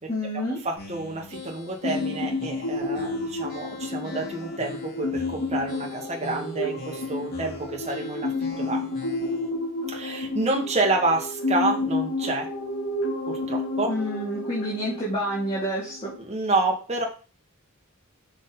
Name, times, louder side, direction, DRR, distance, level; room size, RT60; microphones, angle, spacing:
voice 1, 0.1-0.6 13.9-16.1, equal, 30° left, -7 dB, 2.8 m, -28 dB
voice 2, 0.6-8.3 8.6-8.8 9.9-12.5 13.3-13.9 16.2-17.1, right 3 dB, 30° right, 0 dB, 1.8 m, -28 dB
sound 1, 0.8-9.5, left 2 dB, 45° left, 3.8 m, -43 dB
sound 2, 1.8-16.2, left 2 dB, 75° left, 2.5 m, -31 dB
6.6 x 6.2 x 4.0 m, 0.35 s
head